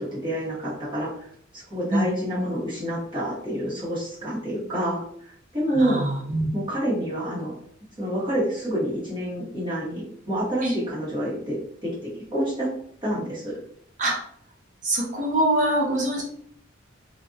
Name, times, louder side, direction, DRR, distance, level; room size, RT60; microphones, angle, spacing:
voice 1, 0.0-6.0 6.5-7.5 8.0-11.9 12.3-12.7 13.0-13.6, right 1 dB, 25° right, -9 dB, 1.2 m, -28 dB
voice 2, 5.7-6.5 10.6-10.7 14.0-14.2 14.8-16.2, right 1 dB, 40° right, -2 dB, 0.8 m, -24 dB
2.6 x 2.4 x 2.6 m, 0.64 s
head